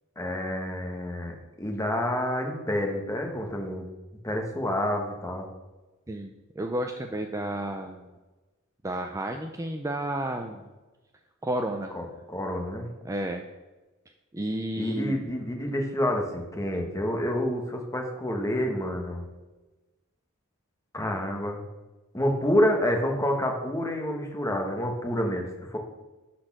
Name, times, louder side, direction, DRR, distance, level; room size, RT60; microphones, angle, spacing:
voice 1, 0.2-3.8 4.2-5.4 11.9-12.9 14.8-19.2 20.9-21.6 22.1-25.8, left 1 dB, 15° left, 2 dB, 1.3 m, -28 dB
voice 2, 6.1-8.1 8.8-10.6 11.4-11.9 13.0-13.4 14.3-15.2, right 1 dB, 15° right, 4 dB, 0.5 m, -31 dB
11.5 x 4.3 x 6.0 m, 1.1 s
head